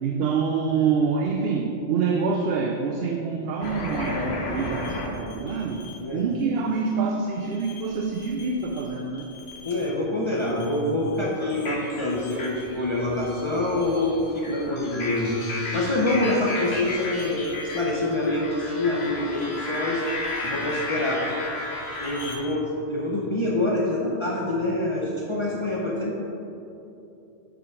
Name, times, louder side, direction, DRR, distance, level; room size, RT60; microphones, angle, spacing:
voice 1, 0.0-9.3, right 5 dB, 70° right, 2 dB, 0.8 m, -26 dB
sound 1, 3.6-6.0 7.5-8.8 9.1-10.0 10.4-22.4, left 2 dB, 70° left, 1.2 m, -34 dB
voice 2, 9.6-20.0 20.4-21.2 22.0-26.1, left 2 dB, 30° left, -4 dB, 0.8 m, -26 dB
6.9 x 5.2 x 5.0 m, 2.8 s
omnidirectional pair, 1.1 m